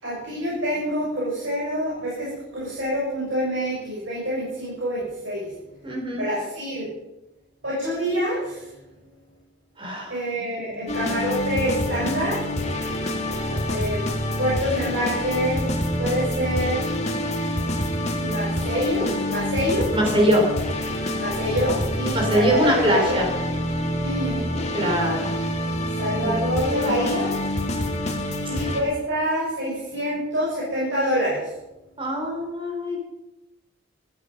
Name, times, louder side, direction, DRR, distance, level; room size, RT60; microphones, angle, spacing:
voice 1, 0.0-5.5 6.1-6.9 7.6-8.7 10.1-12.4 13.5-14.1 14.4-15.7 16.0-16.8 18.2-19.9 21.2-23.3 24.0-24.7 25.9-27.3 28.4-31.5, equal, 70° right, -7 dB, 7.6 m, -26 dB
voice 2, 5.8-6.3 9.8-10.1 10.7-10.8 19.9-20.5 22.1-23.3 24.7-25.4 26.2-26.9 28.4-28.5 32.0-33.0, equal, 25° right, 0 dB, 4.2 m, -23 dB
sound 1, 10.9-28.8, left 1 dB, 35° left, 2.3 m, -27 dB
15.0 x 15.0 x 5.5 m, 0.96 s
head